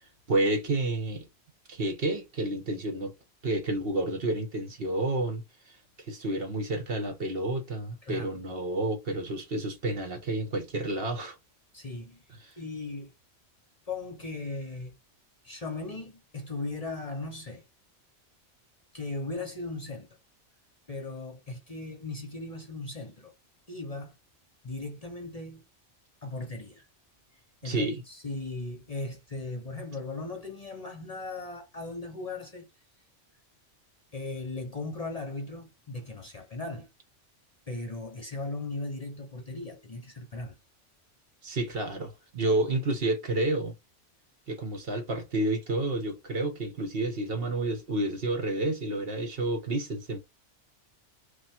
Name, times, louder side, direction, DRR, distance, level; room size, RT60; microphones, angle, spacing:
voice 1, 0.3-1.3 1.7-3.1 3.4-5.4 6.0-11.4 27.6-28.0 41.4-43.7 44.5-50.2, right 2 dB, 55° right, 1.2 m, -30 dB
voice 2, 8.0-8.3 11.7-12.2 12.6-13.1 13.9-15.0 15.4-17.6 18.9-20.1 20.9-23.3 23.7-24.2 24.6-25.6 26.2-26.9 27.6-32.7 34.1-36.9 37.7-40.6, left 2 dB, 35° left, 0.9 m, -37 dB
3.2 x 2.5 x 4.3 m
omnidirectional pair, 1.2 m